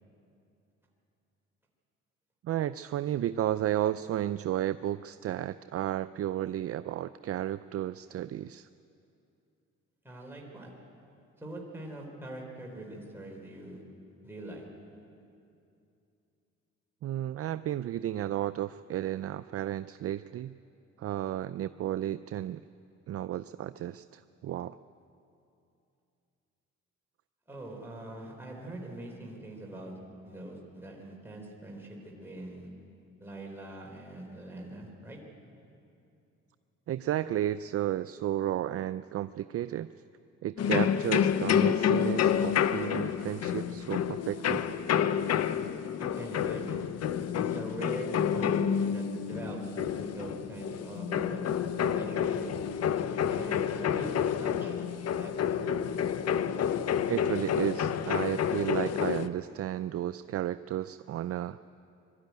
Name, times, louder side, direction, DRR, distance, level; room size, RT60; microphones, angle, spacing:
voice 1, 2.4-8.7 17.0-20.5 21.0-22.6 23.1-24.8 36.9-39.9 40.4-44.6 57.1-61.6, right 12 dB, 50° right, 14 dB, 0.4 m, -33 dB
voice 2, 10.0-10.7 11.4-13.8 14.2-14.6 27.5-29.9 30.2-32.7 33.2-35.2 45.3-45.4 46.0-46.9 47.4-48.1 48.3-51.5 51.8-52.5 53.3-54.8 55.1-55.3 56.0-56.1 56.6-57.1, right 1 dB, 5° right, -1 dB, 3.8 m, -43 dB
sound 1, 40.6-59.3, left 8 dB, 55° left, 0.7 m, -29 dB
sound 2, 43.4-59.0, left 5 dB, 80° left, 1.2 m, -44 dB
22.0 x 13.0 x 9.5 m, 2.7 s
cardioid pair, 90°, 30 cm